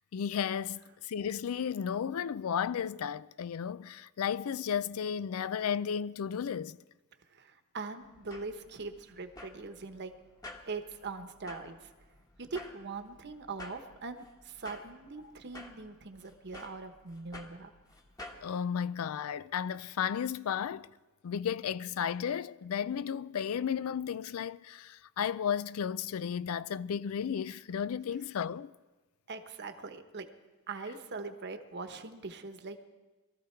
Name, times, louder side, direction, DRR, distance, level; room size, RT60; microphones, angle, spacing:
voice 1, 0.1-0.8 1.1-6.8 18.4-20.9 21.2-28.7, left 8 dB, 75° left, 0.4 m, -33 dB
voice 2, 7.3-10.1 10.7-11.9 12.4-17.7 29.3-30.3 30.7-32.8, right 4 dB, 55° right, 1.1 m, -42 dB
sound 1, 8.0-18.5, left 2 dB, 15° left, 1.3 m, -51 dB
22.5 x 13.5 x 4.5 m
head